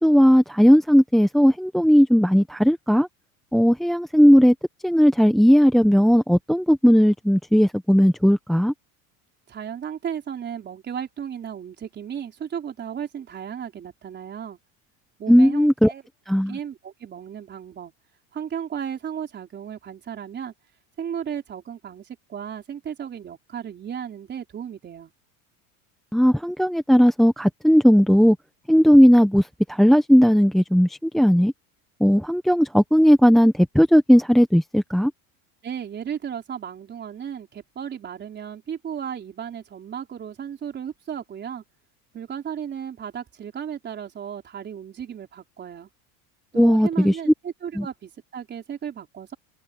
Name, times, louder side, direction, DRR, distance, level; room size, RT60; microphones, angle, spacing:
voice 1, 0.0-3.1 3.5-4.5 4.8-8.7 15.3-15.9 16.3-16.6 26.1-28.4 28.7-31.5 32.0-35.1 46.6-47.2 47.8-47.9, equal, ahead, 0.7 m, -16 dB
voice 2, 9.5-14.6 15.2-16.0 16.5-17.9 18.3-20.5 21.0-25.1 35.6-41.6 42.1-45.9 46.5-49.3, right 8 dB, 25° right, 4.3 m, -34 dB
open air
cardioid pair, 155°, 40 cm